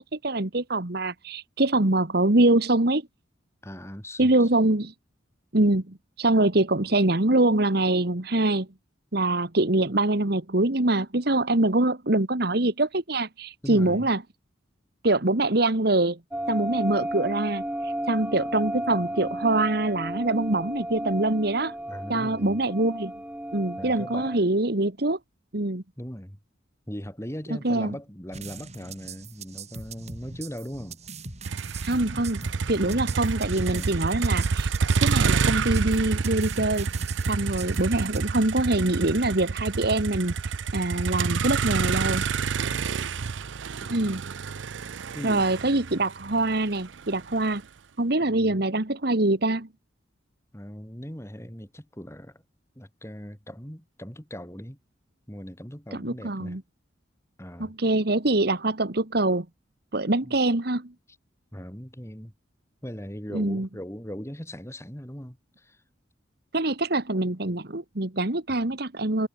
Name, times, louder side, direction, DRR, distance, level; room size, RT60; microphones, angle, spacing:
voice 1, 0.0-3.0 4.2-4.9 5.5-8.7 9.1-14.2 15.0-16.2 16.5-21.7 22.1-23.1 23.5-25.2 25.5-25.8 27.6-27.9 31.8-32.4 32.7-34.7 35.0-36.9 37.3-40.4 40.7-42.2 43.9-44.2 45.2-47.6 48.0-49.7 55.9-56.6 57.6-59.5 59.9-60.9 63.3-63.7 66.5-69.3, right 2 dB, 55° right, 1.8 m, -24 dB
voice 2, 3.6-4.5 13.6-14.1 21.9-22.6 23.8-24.4 26.0-26.4 26.9-31.0 32.7-33.2 33.4-34.0 42.7-42.9 43.8-43.9 45.1-45.5 48.3-48.6 50.5-52.4 52.8-54.8 55.3-56.6 57.4-57.7 60.2-60.3 61.5-62.3 62.8-65.8 68.5-68.7, equal, 15° left, 5.2 m, -39 dB
sound 1, 16.3-24.4, right 1 dB, 5° right, 1.7 m, -33 dB
sound 2, 28.3-38.3, right 3 dB, 35° right, 6.4 m, -41 dB
Motor vehicle (road), 31.4-47.6, right 5 dB, 75° right, 0.6 m, -28 dB
head